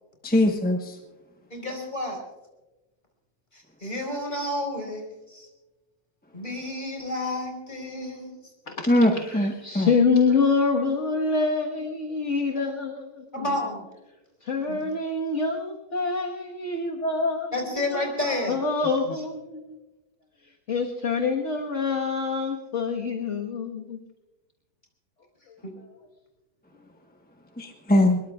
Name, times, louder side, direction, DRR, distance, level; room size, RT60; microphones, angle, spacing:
voice 1, 0.2-0.9 8.9-9.9 27.6-28.2, left 1 dB, 5° left, 2 dB, 1.0 m, -21 dB
voice 2, 1.5-2.2 3.5-5.5 6.3-8.3 13.3-13.9 14.7-14.9 17.5-18.6 25.6-25.7, left 1 dB, 30° left, 1 dB, 4.9 m, -31 dB
voice 3, 8.7-13.6 14.4-17.5 17.9-18.0 18.5-19.8 20.7-24.0, left 4 dB, 50° left, -1 dB, 1.7 m, -26 dB
24.0 x 22.0 x 2.4 m, 1.1 s
omnidirectional pair, 1.7 m